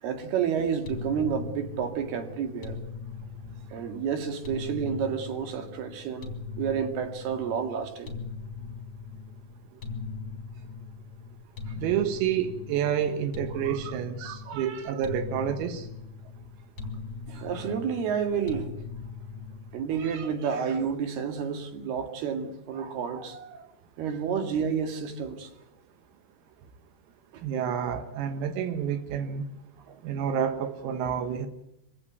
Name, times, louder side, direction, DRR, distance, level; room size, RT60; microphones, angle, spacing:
voice 1, 0.0-2.8 3.7-8.1 9.7-9.8 11.7-11.8 13.5-13.9 14.2-15.0 17.3-18.7 19.7-23.7 24.0-25.5 27.3-27.4 29.9-30.0, right 7 dB, 60° right, 3.6 m, -30 dB
sound 1, 0.8-20.2, left 4 dB, 25° left, 3.0 m, -40 dB
voice 2, 11.8-15.9 27.4-29.5 30.0-31.5, right 8 dB, 90° right, 4.3 m, -29 dB
25.0 x 16.5 x 9.3 m
omnidirectional pair, 6.0 m